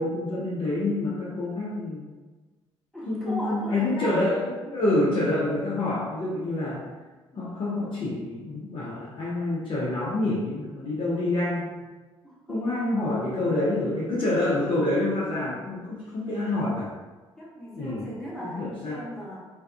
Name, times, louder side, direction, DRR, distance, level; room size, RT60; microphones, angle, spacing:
voice 1, 0.0-2.1 3.0-6.8 7.4-11.8 12.5-16.9 17.7-18.1 18.4-19.0, left 2 dB, 35° left, -6 dB, 0.5 m, -27 dB
voice 2, 2.9-4.2 7.3-7.4 8.3-8.4 12.2-12.7 17.4-19.5, equal, 5° left, -8 dB, 1.0 m, -38 dB
2.5 x 2.3 x 2.3 m, 1.3 s
figure-of-eight pair, 45°, 14 cm